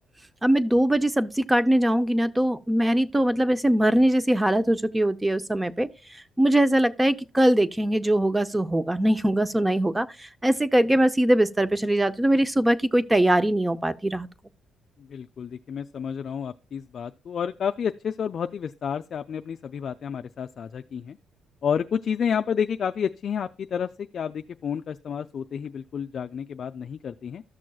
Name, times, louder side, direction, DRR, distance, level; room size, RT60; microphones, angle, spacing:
voice 1, 0.4-5.9 6.4-14.3, right 1 dB, 10° right, 0.6 m, -22 dB
voice 2, 15.0-21.2 21.6-27.4, left 7 dB, 55° left, 0.3 m, -30 dB
13.5 x 6.2 x 2.3 m
cardioid pair, 90°, 0 cm